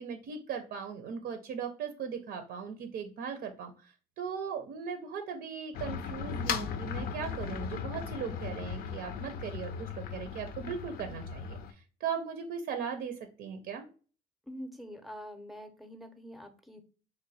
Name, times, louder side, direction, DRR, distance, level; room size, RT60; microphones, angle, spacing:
voice 1, 0.0-13.9, right 6 dB, 65° right, 7 dB, 0.5 m, -38 dB
sound 1, 5.7-11.7, left 7 dB, 65° left, 0.5 m, -37 dB
voice 2, 14.4-16.8, equal, ahead, 7 dB, 0.6 m, -45 dB
3.1 x 2.1 x 3.9 m, 0.37 s
cardioid pair, 110°, 17 cm